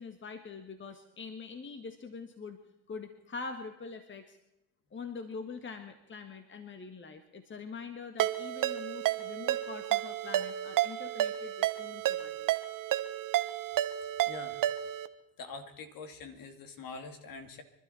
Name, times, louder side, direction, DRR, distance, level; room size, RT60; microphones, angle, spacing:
voice 1, 0.0-2.6 2.9-4.4 4.9-12.5, left 4 dB, 25° left, 7 dB, 1.7 m, -44 dB
Ringtone, 8.2-15.1, right 13 dB, 50° right, 1.2 m, -31 dB
voice 2, 14.3-14.6 15.4-17.6, left 4 dB, 50° left, 7 dB, 2.8 m, -44 dB
25.0 x 12.5 x 4.4 m, 0.92 s
hypercardioid pair, 85°, 42 cm